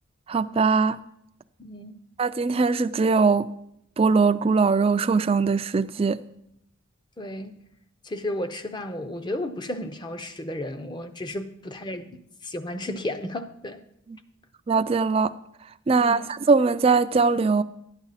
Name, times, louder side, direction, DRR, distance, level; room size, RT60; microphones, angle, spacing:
voice 1, 0.3-1.0 2.2-3.5 4.0-6.2 14.7-15.3 15.9-17.6, right 4 dB, 25° right, 0.3 m, -21 dB
voice 2, 1.6-2.0 7.2-7.5 8.0-13.8 16.0-16.3, left 1 dB, 20° left, 0.6 m, -33 dB
11.5 x 9.8 x 4.1 m
head